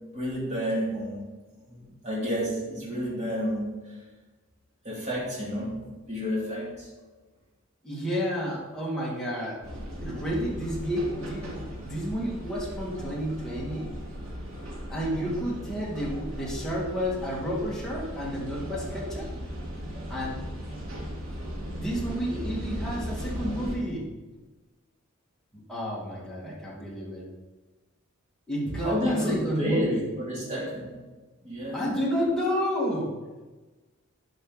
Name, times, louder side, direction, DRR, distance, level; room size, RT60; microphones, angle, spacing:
voice 1, 0.1-1.2 1.7-3.9 4.8-5.8 6.1-6.9 28.8-30.9 31.4-31.8, equal, 35° right, -6 dB, 2.9 m, -30 dB
voice 2, 7.8-9.6 10.0-13.9 14.9-19.3 20.1-20.4 21.7-24.1 25.7-27.3 28.5-30.0 31.7-33.2, equal, 5° left, -6 dB, 2.3 m, -30 dB
sound 1, 9.6-23.8, equal, 85° right, 2.6 m, -37 dB
11.0 x 5.3 x 4.1 m, 1.2 s
head